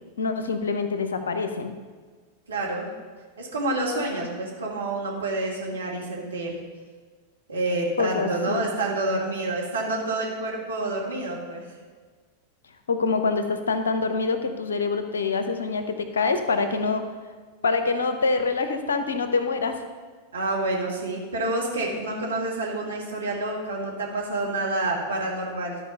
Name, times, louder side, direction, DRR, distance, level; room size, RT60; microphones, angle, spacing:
voice 1, 0.2-1.7 8.0-8.6 12.9-17.0 17.6-19.8, left 4 dB, 70° left, 8 dB, 0.7 m, -25 dB
voice 2, 2.5-2.9 3.4-6.6 7.5-11.6 20.3-25.8, right 2 dB, 70° right, -2 dB, 1.9 m, -28 dB
12.0 x 4.8 x 5.4 m, 1.5 s
figure-of-eight pair, 90°, 0 cm